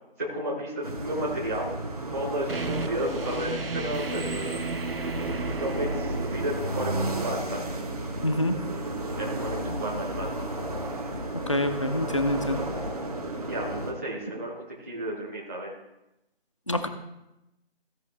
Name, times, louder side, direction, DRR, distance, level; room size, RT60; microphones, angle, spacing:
voice 1, 0.2-1.7 2.1-4.6 5.6-7.6 9.2-10.3 13.5-15.7, equal, 15° right, -8 dB, 1.1 m, -32 dB
sound 1, 0.8-13.9, right 1 dB, 35° right, 1.4 m, -32 dB
sound 2, 2.5-7.9, right 4 dB, 60° right, 0.9 m, -35 dB
voice 2, 8.2-8.6 11.5-12.6 16.7-16.9, left 1 dB, 30° left, 7 dB, 0.6 m, -26 dB
16.0 x 6.0 x 3.4 m, 0.92 s
figure-of-eight pair, 165°, 32 cm